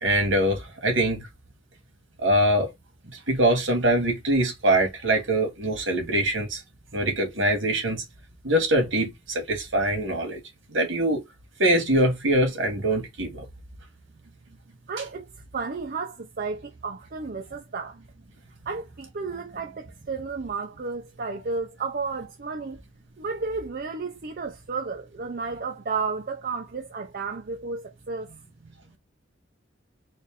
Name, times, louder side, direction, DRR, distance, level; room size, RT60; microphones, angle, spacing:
voice 1, 0.0-1.2 2.2-2.7 3.3-6.6 6.9-8.0 8.4-10.4 10.7-11.2 11.6-13.4, right 1 dB, 75° right, 2.0 m, -23 dB
voice 2, 14.9-18.1 18.7-22.8 23.2-28.3, right 4 dB, 50° right, 0.6 m, -32 dB
4.3 x 2.6 x 3.6 m
head